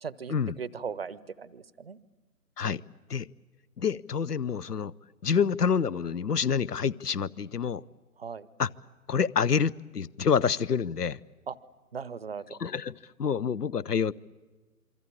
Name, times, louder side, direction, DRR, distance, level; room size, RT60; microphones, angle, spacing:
voice 1, 0.0-2.0 8.2-8.5 11.5-11.6 11.9-12.6, right 6 dB, 40° right, 0.8 m, -38 dB
voice 2, 3.8-4.9 5.2-7.8 8.6-8.7 9.1-11.2 12.5-14.1, left 6 dB, 75° left, 0.9 m, -27 dB
27.5 x 24.0 x 8.7 m
figure-of-eight pair, 145°, 48 cm